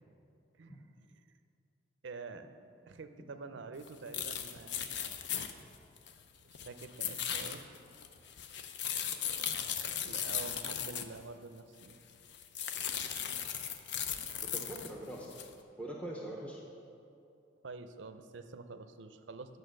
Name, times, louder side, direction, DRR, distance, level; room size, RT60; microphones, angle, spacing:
voice 1, 2.0-2.5 2.9-4.9 6.6-7.6 10.0-12.0 17.6-19.6, right 4 dB, 70° right, 9 dB, 0.5 m, -47 dB
sound 1, 3.8-3.9 4.1-6.2 6.5-11.2 11.8-11.9 12.3-14.9 15.3-15.5, left 8 dB, 65° left, 0.5 m, -37 dB
voice 2, 14.5-15.4 15.8-16.6, right 1 dB, 5° left, -3 dB, 0.7 m, -43 dB
8.8 x 6.6 x 6.4 m, 2.5 s
head